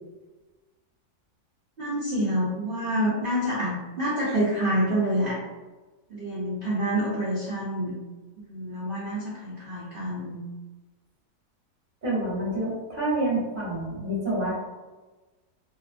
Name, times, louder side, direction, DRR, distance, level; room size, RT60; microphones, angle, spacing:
voice 1, 1.8-5.4 6.1-7.9 8.5-10.4, equal, 70° right, -7 dB, 0.5 m, -27 dB
voice 2, 12.0-14.6, right 1 dB, 35° right, -8 dB, 1.0 m, -28 dB
2.7 x 2.2 x 2.4 m, 1.2 s
omnidirectional pair, 1.7 m